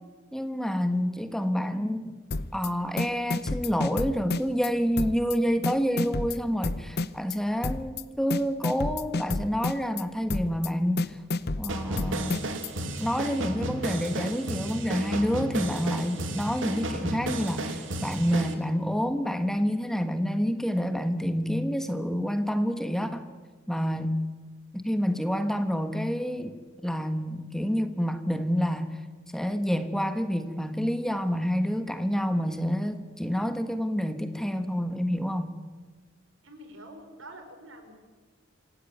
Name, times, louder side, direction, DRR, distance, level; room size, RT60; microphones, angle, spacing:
voice 1, 0.3-2.2 2.5-11.2 11.6-12.5 13.0-23.2 23.7-24.2 24.7-26.5 26.8-29.0 29.3-35.6, equal, ahead, 8 dB, 1.4 m, -28 dB
sound 1, 2.3-2.7 3.0-4.7 5.0-5.4 5.6-7.4 7.6-8.0 8.3-10.0 10.3-10.7 11.0-12.7, left 3 dB, 55° left, 0.9 m, -30 dB
sound 2, 11.7-18.5, right 1 dB, 70° right, 2.8 m, -33 dB
voice 2, 36.4-37.9, right 1 dB, 90° right, 6 dB, 5.3 m, -46 dB
26.5 x 16.5 x 9.3 m, 1.4 s
head